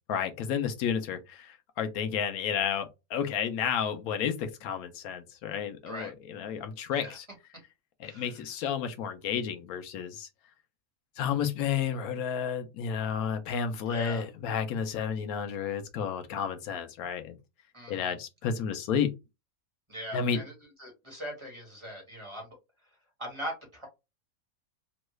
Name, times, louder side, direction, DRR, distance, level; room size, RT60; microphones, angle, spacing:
voice 1, 0.1-7.3 8.0-10.3 11.2-17.4 17.9-19.1 20.1-20.4, left 7 dB, 85° left, 1.1 m, -31 dB
voice 2, 13.9-14.3 17.7-18.1 19.9-20.5 20.8-22.5 23.2-23.9, equal, 20° right, 1.3 m, -40 dB
3.1 x 2.2 x 3.1 m
omnidirectional pair, 1.5 m